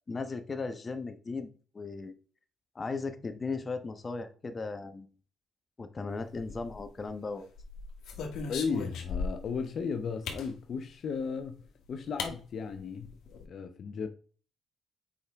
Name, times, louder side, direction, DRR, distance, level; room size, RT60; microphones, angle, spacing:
voice 1, 0.1-1.5 1.7-2.1 2.7-5.1 5.8-7.5, left 4 dB, 30° left, 1.0 m, -36 dB
sound 1, 6.3-7.0 7.6-9.6 10.2-10.5 11.6-11.7 12.2-12.3 12.7-12.8 13.0-13.4, left 4 dB, 80° left, 1.5 m, -37 dB
voice 2, 8.5-11.6 11.9-13.2 13.5-14.1, left 5 dB, 55° left, 0.7 m, -35 dB
7.1 x 5.1 x 3.5 m
cardioid pair, 90°, 0 cm